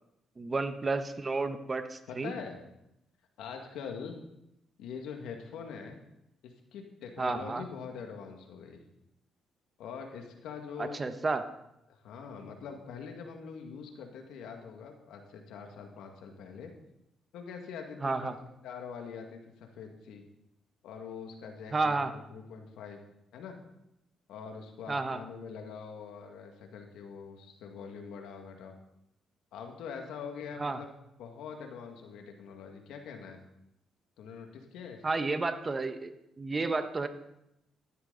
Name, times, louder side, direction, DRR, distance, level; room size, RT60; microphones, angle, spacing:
voice 1, 0.4-2.3 7.2-7.6 10.8-11.4 18.0-18.3 21.7-22.1 24.9-25.2 30.6-30.8 35.0-37.1, right 3 dB, 30° right, 8 dB, 1.2 m, -31 dB
voice 2, 2.1-2.6 3.4-4.2 4.8-6.0 6.4-8.8 9.8-11.0 11.9-16.7 17.3-18.3 18.6-20.2 20.8-23.0 23.3-23.6 24.3-28.8 29.5-30.9 31.2-33.4 34.2-35.0, left 6 dB, 85° left, 3 dB, 2.0 m, -44 dB
14.5 x 12.5 x 4.1 m, 0.84 s
cardioid pair, 90°, 0 cm